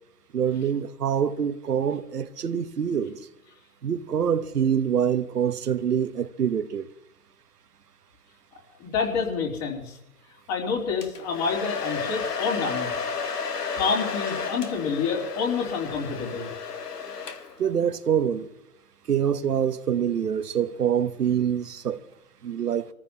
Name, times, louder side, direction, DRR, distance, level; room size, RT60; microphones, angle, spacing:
voice 1, 0.3-3.2 3.8-6.9 17.6-18.5 19.1-22.0 22.4-22.9, right 8 dB, 80° right, 1.2 m, -25 dB
voice 2, 8.8-10.0 10.5-12.9 13.7-16.5, left 5 dB, 30° left, 3.3 m, -28 dB
Domestic sounds home sounds, 11.0-17.7, left 5 dB, 85° left, 1.7 m, -32 dB
26.5 x 14.5 x 2.8 m
hypercardioid pair, 135°, 46 cm